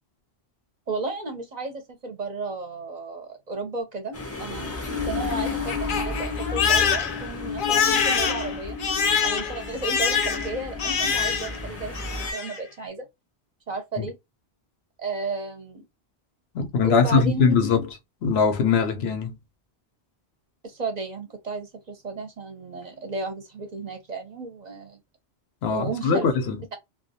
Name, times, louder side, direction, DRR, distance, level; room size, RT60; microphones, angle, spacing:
voice 1, 0.9-8.8 9.2-13.1 13.7-14.1 15.0-15.8 16.8-17.6 20.6-25.0 25.7-26.3, right 3 dB, 50° right, 0.6 m, -33 dB
sound 1, 4.1-12.3, left 2 dB, 25° left, 0.3 m, -35 dB
Crying sobbing, 4.7-11.7 11.9-12.6, left 6 dB, 60° left, 0.7 m, -25 dB
voice 2, 16.5-17.8 18.2-19.3 25.6-26.6, left 5 dB, 85° left, 0.9 m, -21 dB
2.3 x 2.2 x 2.7 m
omnidirectional pair, 1.0 m